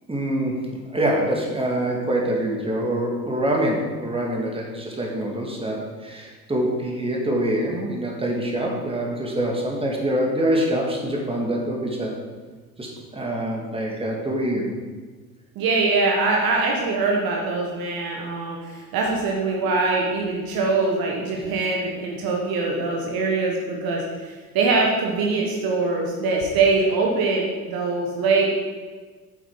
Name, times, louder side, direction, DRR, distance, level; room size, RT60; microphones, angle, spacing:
voice 1, 0.1-0.6 0.9-12.1 12.8-14.8, right 1 dB, 10° right, -1 dB, 2.1 m, -25 dB
voice 2, 15.5-28.5, right 3 dB, 50° right, -1 dB, 1.5 m, -23 dB
8.4 x 8.0 x 3.9 m, 1.4 s
figure-of-eight pair, 60°, 45 cm